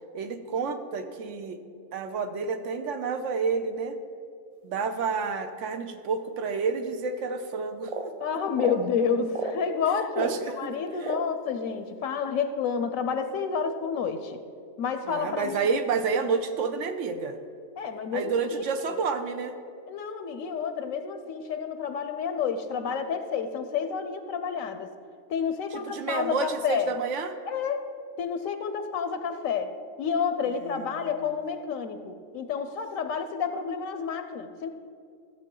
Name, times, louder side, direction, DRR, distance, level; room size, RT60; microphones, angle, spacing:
voice 1, 0.1-1.6 1.9-4.0 4.6-8.1 10.2-11.1 15.1-17.4 18.1-19.5 25.7-27.4 30.6-31.1, right 5 dB, 65° right, 8 dB, 1.0 m, -30 dB
sound 1, 7.8-8.1 8.5-8.9 9.3-9.6 10.1-10.4 11.0-11.3, right 4 dB, 50° right, 0.4 m, -32 dB
voice 2, 8.2-10.3 10.6-14.4 14.8-15.6 17.8-18.6 19.9-24.9 25.3-26.9 27.4-27.8 28.2-29.7 30.0-34.7, left 6 dB, 80° left, 9 dB, 1.0 m, -29 dB
14.0 x 7.5 x 3.8 m, 2.4 s
omnidirectional pair, 1.4 m